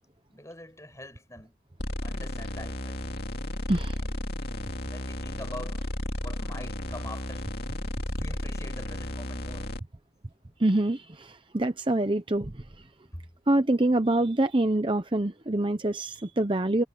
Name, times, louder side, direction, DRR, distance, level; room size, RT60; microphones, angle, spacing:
voice 1, 0.3-1.5 2.0-3.1 4.0-4.2 4.9-5.9 6.2-7.5 8.2-9.7 13.1-13.2, left 1 dB, 15° left, 6.4 m, -44 dB
sound 1, 1.8-9.8, left 1 dB, 55° left, 2.4 m, -33 dB
voice 2, 10.6-12.6 13.5-16.8, right 1 dB, 25° right, 0.8 m, -25 dB
head